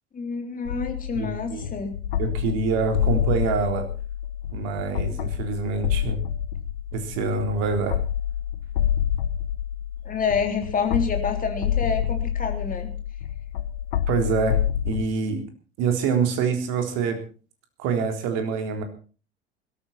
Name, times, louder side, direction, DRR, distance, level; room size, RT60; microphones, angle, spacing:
voice 1, 0.1-2.0 10.0-12.9, left 5 dB, 25° left, 5 dB, 3.5 m, -28 dB
sound 1, 0.7-15.0, left 10 dB, 70° left, 0.8 m, -28 dB
voice 2, 1.1-1.7 2.2-3.8 4.5-6.2 6.9-8.0 14.1-14.6 14.8-15.4 15.8-17.2 17.8-18.8, right 5 dB, 55° right, 6 dB, 3.6 m, -25 dB
21.0 x 13.5 x 4.2 m, 0.38 s
figure-of-eight pair, 70°, 31 cm